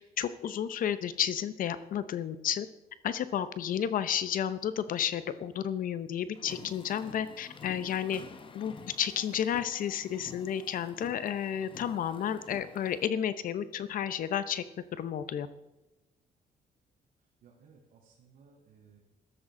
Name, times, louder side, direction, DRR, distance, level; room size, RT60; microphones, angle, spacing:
voice 1, 0.2-2.7 3.0-8.2 8.5-14.6 14.9-15.5, left 9 dB, 65° left, 13 dB, 0.9 m, -32 dB
sound 1, 6.4-13.1, left 5 dB, 35° left, 1.1 m, -50 dB
voice 2, 17.2-19.0, right 5 dB, 85° right, -5 dB, 3.1 m, -60 dB
15.5 x 13.0 x 3.8 m, 0.99 s
cardioid pair, 115°, 15 cm